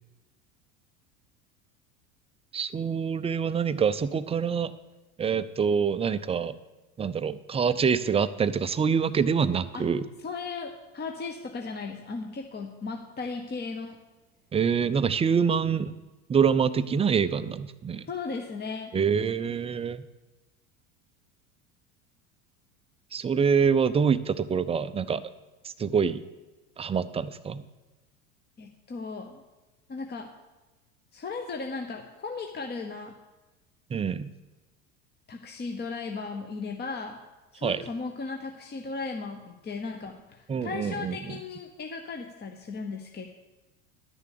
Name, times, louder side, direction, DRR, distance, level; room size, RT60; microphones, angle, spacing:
voice 1, 2.5-4.7 5.2-6.6 7.0-10.0 14.5-15.9 16.3-18.0 18.9-20.0 23.1-25.2 25.8-26.2 26.8-27.6 33.9-34.3 37.6-37.8 40.5-41.4, right 6 dB, 15° right, 13 dB, 0.4 m, -25 dB
voice 2, 10.2-14.0 18.1-18.9 28.6-29.4 29.9-30.3 31.1-33.1 35.3-37.2 37.5-43.3, left 4 dB, 25° left, 3 dB, 0.9 m, -36 dB
11.0 x 6.7 x 6.7 m, 1.1 s
hypercardioid pair, 90°, 41 cm